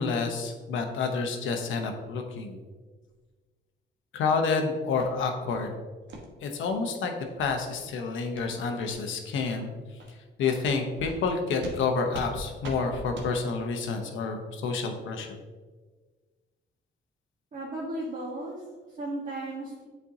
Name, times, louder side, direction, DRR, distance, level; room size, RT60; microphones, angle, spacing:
voice 1, 0.0-2.6 4.1-5.7 6.4-7.1 7.4-9.7 10.4-15.3, left 4 dB, 80° left, 4 dB, 0.9 m, -29 dB
sound 1, 5.0-5.1 5.5-5.7 6.1-6.2 6.7-6.8 7.2-7.3 7.7-7.9 8.3-8.5 8.8-9.0 9.5-9.6 10.0-10.1 10.5-10.7 11.1-11.2 11.6-11.8 12.1-12.3 12.6-12.8 13.1-13.3, right 2 dB, 70° right, 1.3 m, -41 dB
voice 2, 17.5-19.9, right 1 dB, 40° right, -5 dB, 1.3 m, -35 dB
8.4 x 4.5 x 2.8 m, 1.4 s
cardioid pair, 90°, 20 cm